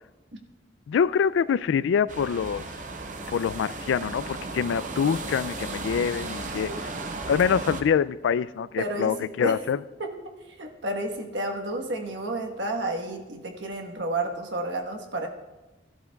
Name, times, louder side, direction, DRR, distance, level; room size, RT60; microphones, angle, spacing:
voice 1, 0.9-2.6 3.3-6.7 7.3-9.8, left 7 dB, 90° left, 18 dB, 0.3 m, -25 dB
sound 1, 2.1-7.8, right 3 dB, 40° right, 0.7 m, -35 dB
voice 2, 8.8-9.6 10.0-15.3, right 1 dB, 80° right, 3 dB, 1.3 m, -31 dB
14.0 x 12.0 x 2.3 m, 1.1 s
head